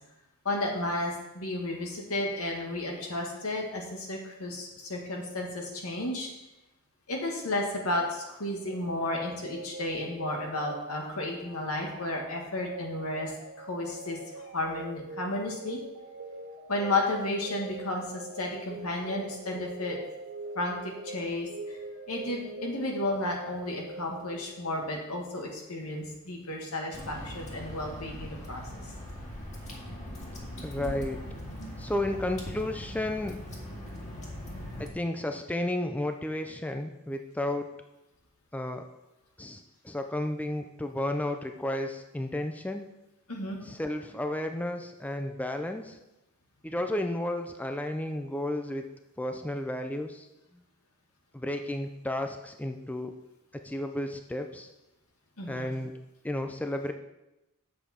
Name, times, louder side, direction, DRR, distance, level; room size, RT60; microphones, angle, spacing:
voice 1, 0.5-6.3 7.1-13.3 13.6-14.2 14.5-15.8 16.7-20.0 20.6-20.8 21.0-21.8 22.1-28.7 43.3-43.6 55.4-55.7, left 2 dB, 80° left, 0 dB, 2.0 m, -32 dB
sound 1, 8.6-25.2, right 2 dB, 60° right, 1.8 m, -44 dB
Water / Drip, 26.9-34.9, equal, 35° left, 2.1 m, -40 dB
voice 2, 30.6-31.2 31.8-33.4 34.8-37.7 38.5-38.8 39.4-42.9 43.6-46.0 46.6-48.8 49.2-50.3 51.3-53.1 53.5-54.7 55.5-55.9 56.2-56.9, left 1 dB, 5° left, 5 dB, 0.4 m, -32 dB
8.6 x 7.1 x 4.4 m, 0.95 s
head